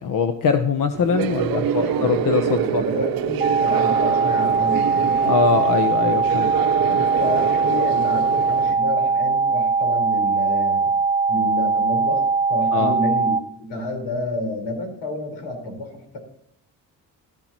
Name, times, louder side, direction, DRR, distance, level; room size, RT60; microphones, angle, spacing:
voice 1, 0.0-2.8 5.2-6.5 6.9-7.0 12.7-12.9, left 5 dB, 55° left, 8 dB, 0.9 m, -22 dB
sound 1, 0.9-8.7, right 11 dB, 60° right, 0.7 m, -26 dB
voice 2, 1.5-5.1 7.2-10.9 11.3-16.2, left 2 dB, 85° left, 2 dB, 4.6 m, -29 dB
sound 2, 3.4-13.4, right 4 dB, 20° right, 0.7 m, -21 dB
13.0 x 11.5 x 3.0 m, 0.72 s
cardioid pair, 90°, 39 cm